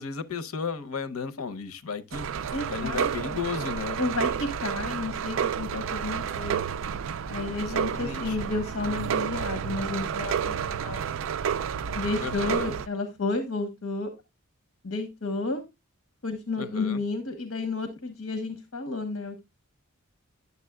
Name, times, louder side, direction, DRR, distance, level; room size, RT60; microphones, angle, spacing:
voice 1, 0.0-4.0 7.6-8.4 12.2-12.7 16.6-17.0, left 5 dB, 85° left, 0.8 m, -34 dB
sound 1, 2.1-12.9, right 7 dB, 65° right, 0.4 m, -30 dB
voice 2, 2.5-3.1 4.0-6.8 7.3-11.0 11.9-14.1 14.8-15.6 16.2-19.4, left 3 dB, 70° left, 1.2 m, -31 dB
11.0 x 7.0 x 2.3 m
head